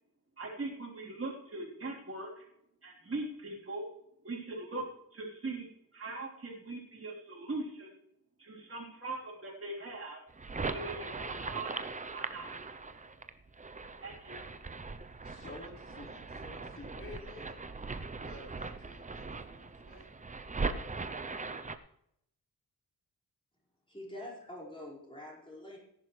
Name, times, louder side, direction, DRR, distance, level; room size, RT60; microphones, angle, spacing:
voice 1, 0.4-2.5 2.8-3.8 4.2-4.8 5.1-7.9 8.4-10.2 10.6-11.9 12.1-12.8 14.0-14.4, right 2 dB, 35° right, -4 dB, 3.8 m, -41 dB
sound 1, 10.3-21.8, right 4 dB, 20° right, 0.6 m, -40 dB
voice 2, 15.2-17.6 18.2-20.1, left 2 dB, 35° left, -4 dB, 4.7 m, -51 dB
voice 3, 23.9-25.8, left 1 dB, 15° left, -4 dB, 5.1 m, -45 dB
17.5 x 11.0 x 3.3 m, 0.75 s
wide cardioid pair, 125°, 38 cm